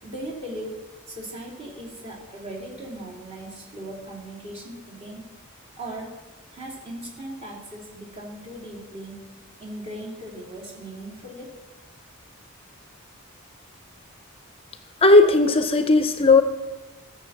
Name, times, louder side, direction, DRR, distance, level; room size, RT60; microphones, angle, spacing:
voice 1, 0.0-0.7 1.1-5.2 5.8-6.1 6.5-9.2 9.6-11.5, right 1 dB, 30° right, -4 dB, 3.9 m, -38 dB
voice 2, 15.0-16.4, left 3 dB, 30° left, 9 dB, 0.6 m, -16 dB
15.5 x 7.0 x 7.4 m, 1.2 s
head